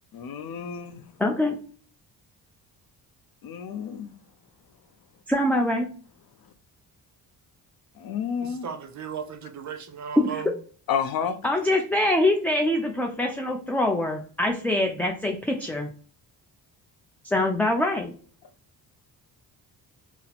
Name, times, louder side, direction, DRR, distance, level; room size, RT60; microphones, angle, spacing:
voice 1, 0.1-1.0 3.4-4.1 8.0-8.7 10.9-11.4, left 7 dB, 55° left, 0.5 m, -30 dB
voice 2, 1.2-1.6 5.3-5.9 10.2-10.4 11.4-15.9 17.2-18.1, left 1 dB, 5° left, 0.3 m, -24 dB
voice 3, 8.4-10.5, right 7 dB, 45° right, 0.6 m, -36 dB
2.7 x 2.0 x 3.9 m
supercardioid pair, 65°, 42 cm